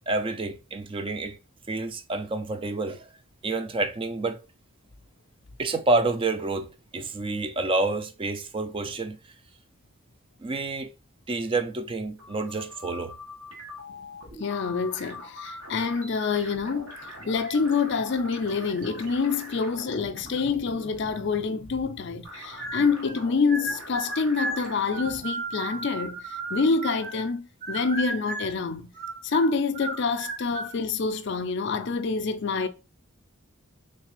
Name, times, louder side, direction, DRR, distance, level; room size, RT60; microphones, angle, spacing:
voice 1, 0.1-1.4 1.7-3.1 3.4-4.4 5.6-9.2 10.4-10.9 11.3-13.1, right 3 dB, 25° right, 0.3 m, -28 dB
sound 1, 12.0-25.2, left 1 dB, 70° right, 1.2 m, -43 dB
voice 2, 14.4-17.0 17.3-28.9 29.2-32.7, left 4 dB, 55° left, 0.4 m, -27 dB
sound 2, 22.6-23.2 23.5-27.3 27.6-28.6 28.9-30.8, right 2 dB, 40° right, 1.0 m, -34 dB
3.7 x 3.2 x 3.0 m
head